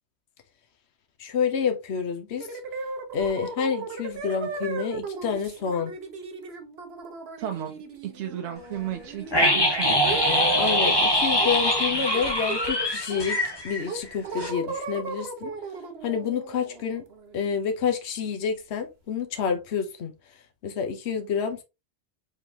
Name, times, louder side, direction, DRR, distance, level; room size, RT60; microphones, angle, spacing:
voice 1, 1.2-2.6 3.1-5.9 10.6-13.4 13.6-15.5 16.0-17.0 17.3-20.1 20.6-21.6, left 6 dB, 75° left, 1.1 m, -28 dB
sound 1, 2.4-10.9 11.4-11.8 12.1-13.4 13.9-17.6, right 3 dB, 65° right, 1.2 m, -36 dB
voice 2, 7.4-10.0, right 10 dB, 85° right, 0.9 m, -34 dB
sound 2, 9.3-14.1 14.4-14.5, left 1 dB, 20° left, 1.3 m, -23 dB
4.9 x 3.7 x 2.8 m
omnidirectional pair, 1.1 m